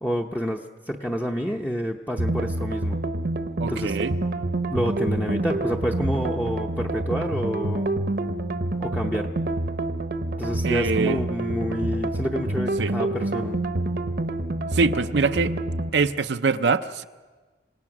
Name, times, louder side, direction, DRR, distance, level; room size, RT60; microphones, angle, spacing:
voice 1, 0.0-3.0 3.6-4.0 4.7-7.9 8.8-9.3 10.4-13.6, equal, 10° left, 0 dB, 0.7 m, -28 dB
sound 1, 2.2-15.9, right 2 dB, 60° right, 0.9 m, -27 dB
voice 2, 3.6-4.2 10.6-11.2 12.8-12.9 14.7-15.5 15.9-17.0, right 4 dB, 75° right, 9 dB, 0.6 m, -23 dB
27.5 x 17.5 x 6.0 m, 1.4 s
head